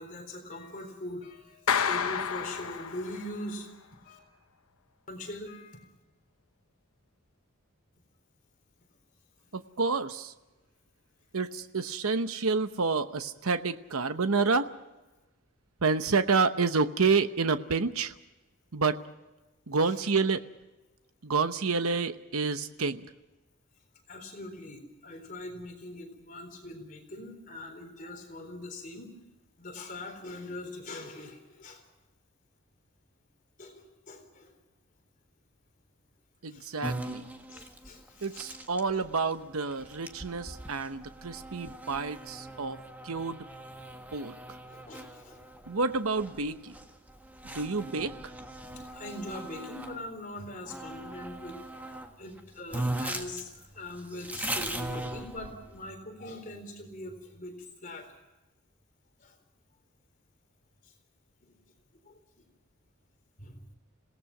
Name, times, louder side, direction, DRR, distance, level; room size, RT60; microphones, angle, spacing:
voice 1, 0.0-4.2 5.1-5.9 19.8-19.9 24.1-29.1 29.6-31.8 33.6-34.5 36.5-36.7 37.5-38.6 44.7-45.4 48.7-58.1 59.2-59.4 60.8-60.9 61.4-61.6 62.0-62.4 63.4-63.7, left 1 dB, 40° left, 4 dB, 3.9 m, -42 dB
Clapping, 1.7-3.4, left 7 dB, 90° left, 1.0 m, -30 dB
voice 2, 9.5-10.3 11.3-14.7 15.8-18.1 18.7-19.0 19.7-20.4 21.2-23.1 36.4-37.2 38.2-42.8 43.0-43.4 44.1-44.4 45.7-46.7 47.4-48.2, right 4 dB, 85° right, 10 dB, 0.9 m, -29 dB
sound 1, 36.8-50.0 50.7-52.1 52.4-52.5 52.7-55.8, right 1 dB, 10° right, 1.5 m, -39 dB
26.5 x 18.0 x 6.1 m, 1.1 s
head